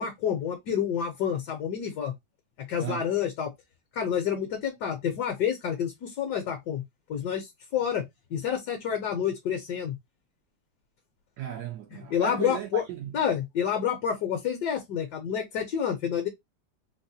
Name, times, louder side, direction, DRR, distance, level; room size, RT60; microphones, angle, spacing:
voice 1, 0.0-2.1 2.6-3.5 3.9-6.8 7.1-8.0 8.3-9.9 12.1-12.8 13.1-16.3, left 8 dB, 70° left, 1.3 m, -29 dB
voice 2, 11.4-13.1, right 9 dB, 70° right, 1.1 m, -35 dB
3.9 x 2.1 x 2.7 m
omnidirectional pair, 2.0 m